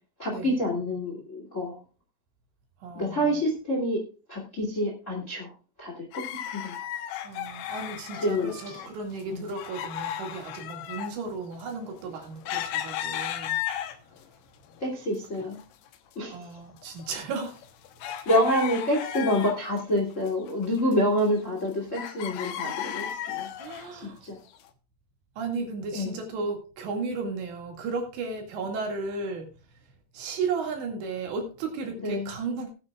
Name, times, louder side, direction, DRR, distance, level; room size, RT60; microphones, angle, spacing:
voice 1, 0.2-1.8 2.9-4.0 4.3-5.5 5.8-6.2 6.5-6.7 8.1-8.8 9.3-9.4 14.8-15.6 16.1-16.5 18.0-23.5 23.9-24.4 25.9-26.2 32.0-32.4, equal, 30° left, 1.4 m, -27 dB
voice 2, 2.8-3.4 7.2-13.6 15.4-15.5 16.3-17.6 23.5-24.2 25.4-29.5 30.1-32.7, right 4 dB, 65° right, 4.1 m, -34 dB
sound 1, 6.1-8.9 9.2-14.2 14.7-15.6 15.9-16.0 16.6-19.8 20.1-21.7 21.9-23.9 24.5-24.6, left 11 dB, 80° left, 2.5 m, -35 dB
19.0 x 9.0 x 2.4 m
omnidirectional pair, 5.8 m